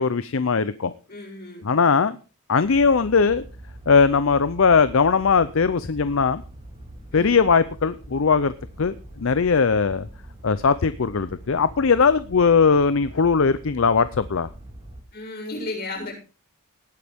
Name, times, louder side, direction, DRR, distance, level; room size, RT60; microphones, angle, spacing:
voice 1, 0.0-0.9 1.6-2.2 2.5-3.4 3.9-6.4 7.1-8.5 8.8-10.1 10.4-14.5, left 5 dB, 65° left, 14 dB, 0.6 m, -19 dB
voice 2, 1.1-1.7 7.1-7.4 15.1-16.2, left 2 dB, 45° left, -1 dB, 7.3 m, -34 dB
sound 1, 2.6-15.0, right 1 dB, 25° right, 2.8 m, -42 dB
18.5 x 9.5 x 3.6 m, 0.34 s
head